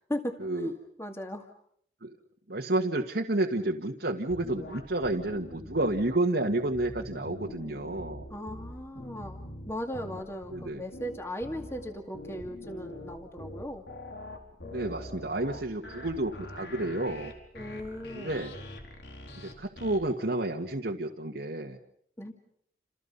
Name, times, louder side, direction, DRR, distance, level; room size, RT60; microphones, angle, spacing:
voice 1, 0.1-1.5 8.3-13.8 17.5-18.4 22.2-22.3, equal, 15° left, 4 dB, 2.4 m, -37 dB
voice 2, 2.5-8.3 10.5-10.8 14.7-17.3 18.1-18.5 19.4-21.8, right 2 dB, 70° right, 0 dB, 1.9 m, -30 dB
sound 1, 4.3-6.0 6.5-20.0, left 1 dB, 80° left, 4.6 m, -44 dB
29.5 x 28.5 x 5.6 m, 0.65 s
head